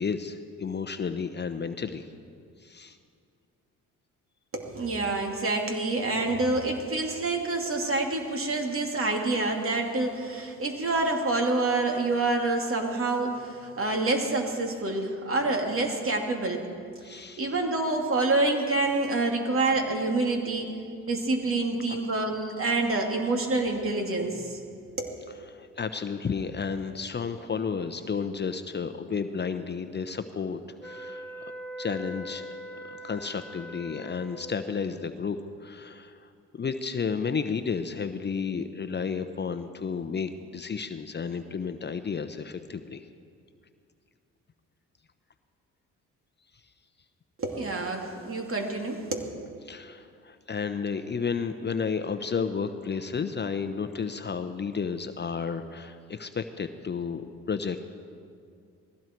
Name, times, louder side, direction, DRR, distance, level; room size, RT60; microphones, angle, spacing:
voice 1, 0.0-2.0 2.6-3.0 17.0-17.5 21.9-22.0 25.5-31.5 31.8-32.4 32.9-36.2 36.5-43.0 49.7-57.8, left 5 dB, 30° left, 9 dB, 0.9 m, -32 dB
voice 2, 4.5-16.6 17.4-20.7 21.1-24.6 25.0-25.2 47.4-49.3, right 2 dB, 40° right, 2 dB, 2.7 m, -27 dB
sound 1, 30.8-34.7, equal, 5° left, 1.6 m, -41 dB
20.5 x 15.5 x 4.6 m, 2.3 s
supercardioid pair, 70°, 33 cm